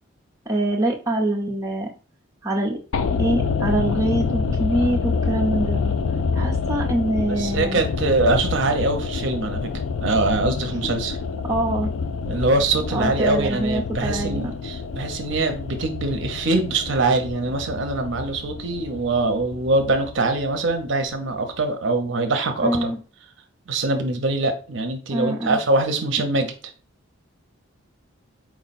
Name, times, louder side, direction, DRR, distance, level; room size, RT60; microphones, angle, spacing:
voice 1, 0.5-1.9 2.4-2.8 3.2-5.8 6.3-7.8 11.5-11.9 12.9-14.4 22.6-23.0 25.1-25.6, right 1 dB, 15° right, -3 dB, 0.6 m, -24 dB
sound 1, 2.9-21.1 21.4-21.5, left 5 dB, 75° left, 0.4 m, -27 dB
voice 2, 7.3-9.7 10.0-11.1 12.3-22.9 23.7-26.5, right 2 dB, 65° right, 5 dB, 0.6 m, -23 dB
4.5 x 2.1 x 4.1 m, 0.36 s
head